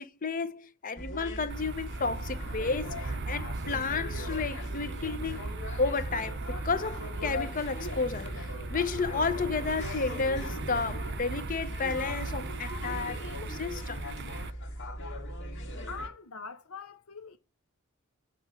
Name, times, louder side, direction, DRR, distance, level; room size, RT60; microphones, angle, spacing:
voice 1, 0.0-5.5 5.8-14.0, left 4 dB, 40° left, 0.7 m, -32 dB
sound 1, 1.0-16.1, equal, 60° left, 2.0 m, -39 dB
sound 2, 1.5-14.5, right 3 dB, 55° right, 0.7 m, -39 dB
voice 2, 15.9-17.4, left 5 dB, 90° left, 0.9 m, -43 dB
8.5 x 5.1 x 7.4 m
head